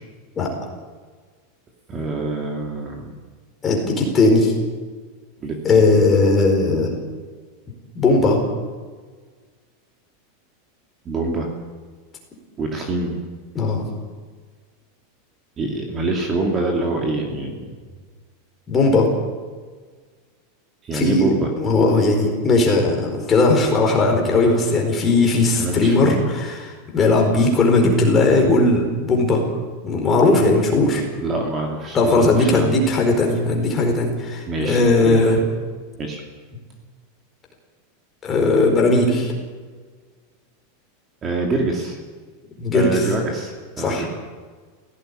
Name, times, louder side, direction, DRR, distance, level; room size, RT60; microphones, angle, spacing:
voice 1, 1.9-3.1 5.4-5.9 11.0-11.5 12.6-13.2 15.6-17.6 20.8-21.5 25.5-26.3 31.2-32.7 34.5-35.3 36.0-36.2 41.2-42.0 42.7-44.1, right 2 dB, 20° right, 1 dB, 2.6 m, -25 dB
voice 2, 3.6-4.5 5.6-6.9 7.9-8.4 13.5-13.8 18.7-19.1 20.9-21.3 21.6-29.5 29.8-31.0 31.9-35.4 38.2-39.3 42.6-43.0 43.8-44.0, left 2 dB, 20° left, 1 dB, 4.5 m, -18 dB
17.0 x 17.0 x 10.0 m, 1.5 s
supercardioid pair, 160°, 0 cm